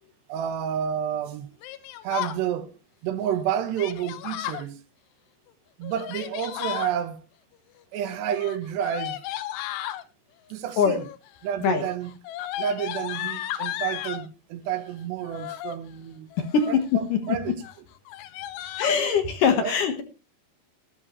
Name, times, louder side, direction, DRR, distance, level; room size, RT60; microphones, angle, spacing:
voice 1, 0.3-1.5 2.0-2.8 3.0-4.8 5.8-7.2 7.9-9.2 10.5-11.1 11.4-12.2 12.6-16.3 16.7-17.5 19.6-19.8, right 9 dB, 80° right, 3.3 m, -30 dB
Yell, 1.6-2.4 3.8-4.7 5.8-6.9 8.2-10.0 10.9-11.3 11.6-14.3 15.2-15.8 16.3-16.9 17.2-17.4 17.6-17.8 18.1-19.0, left 13 dB, 80° left, 3.0 m, -34 dB
voice 2, 18.8-20.0, left 6 dB, 60° left, 2.5 m, -22 dB
13.5 x 13.0 x 3.1 m
omnidirectional pair, 4.8 m